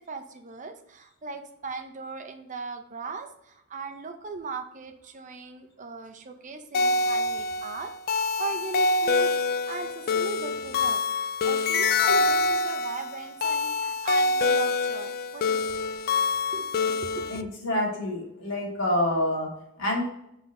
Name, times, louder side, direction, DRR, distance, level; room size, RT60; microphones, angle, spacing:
voice 1, 0.0-15.7 16.5-17.5, right 4 dB, 35° right, 7 dB, 0.7 m, -39 dB
sound 1, 6.7-17.4, left 3 dB, 45° left, 0.3 m, -25 dB
voice 2, 17.3-20.0, left 1 dB, 60° left, -3 dB, 2.4 m, -27 dB
5.9 x 4.1 x 4.9 m, 0.78 s
head